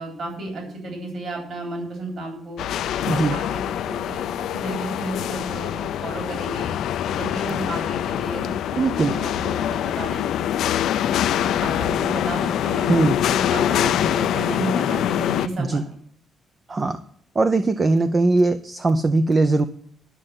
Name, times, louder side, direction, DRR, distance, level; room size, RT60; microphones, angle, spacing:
voice 1, 0.0-2.6 3.0-6.7 7.1-8.6 9.1-10.5 11.3-12.9 13.3-15.8, right 1 dB, 45° right, 1 dB, 3.8 m, -32 dB
sound 1, 2.6-15.5, left 10 dB, 70° left, 0.6 m, -24 dB
voice 2, 8.7-9.2 12.9-13.2 15.6-15.8 16.7-17.0 17.4-19.6, right 3 dB, 20° right, 10 dB, 0.6 m, -20 dB
12.0 x 6.5 x 7.5 m, 0.63 s
cardioid pair, 175°, 0 cm